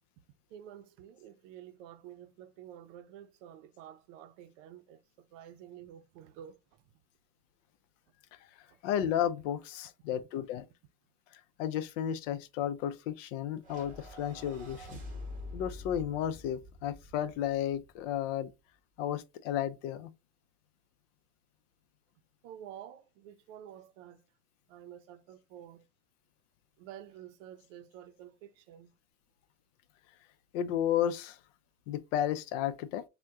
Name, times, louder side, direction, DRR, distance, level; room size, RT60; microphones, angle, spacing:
voice 1, 0.5-6.8 8.7-8.8 22.4-24.2 24.7-25.8 26.8-28.9, right 10 dB, 80° right, 0.5 m, -50 dB
voice 2, 8.8-10.7 11.6-15.0 15.5-18.5 19.0-20.1 30.5-31.4 31.9-33.0, left 10 dB, 85° left, 0.5 m, -33 dB
sound 1, 13.6-18.1, left 2 dB, 20° right, 0.9 m, -46 dB
3.4 x 2.2 x 2.7 m
cardioid pair, 175°, 36 cm